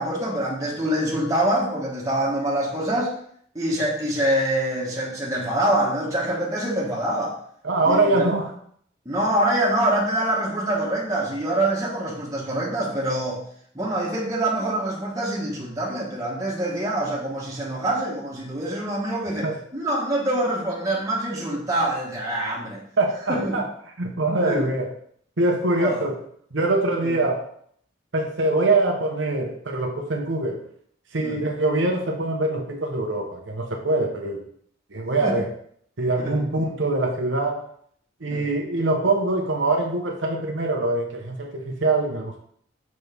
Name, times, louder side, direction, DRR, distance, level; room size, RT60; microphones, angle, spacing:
voice 1, 0.0-3.1 3.5-7.4 7.8-8.3 9.0-13.4 13.7-22.8 23.3-23.6 24.4-24.7 25.8-26.0 27.0-27.2 31.2-31.4 35.2-35.4 36.2-36.3 38.3-38.5, right 1 dB, 20° right, -5 dB, 1.4 m, -25 dB
voice 2, 7.6-8.5 19.4-19.6 23.0-23.6 24.0-24.9 25.4-26.1 26.5-27.4 28.1-30.6 31.1-34.4 34.9-35.5 36.0-37.6 38.2-42.4, right 2 dB, 85° right, 1 dB, 1.0 m, -23 dB
6.3 x 5.4 x 3.5 m, 0.63 s
head